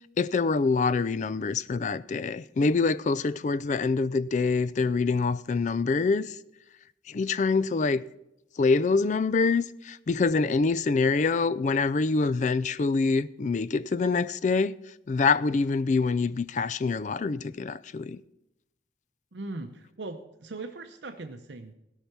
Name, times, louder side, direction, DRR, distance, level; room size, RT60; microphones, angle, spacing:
voice 1, 0.2-6.4 7.1-8.0 8.6-14.7 15.1-18.2, left 4 dB, 40° left, 0.3 m, -25 dB
voice 2, 19.3-21.7, right 2 dB, 75° right, 0.8 m, -39 dB
16.0 x 5.7 x 5.9 m
head